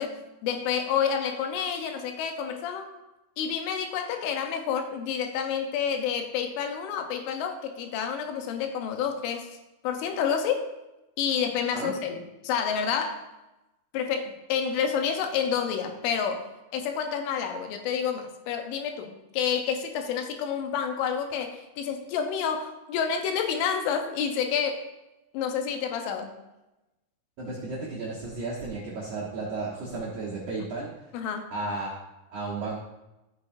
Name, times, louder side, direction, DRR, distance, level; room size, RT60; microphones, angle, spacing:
voice 1, 0.0-2.9 3.4-9.5 9.8-10.7 11.2-13.2 13.9-16.5 16.7-24.8 25.3-26.3 31.1-31.5, left 7 dB, 80° left, 5 dB, 3.4 m, -29 dB
voice 2, 27.4-30.9 31.5-31.9 32.3-32.8, right 3 dB, 65° right, -7 dB, 1.9 m, -33 dB
12.5 x 8.2 x 2.7 m, 0.97 s
omnidirectional pair, 5.6 m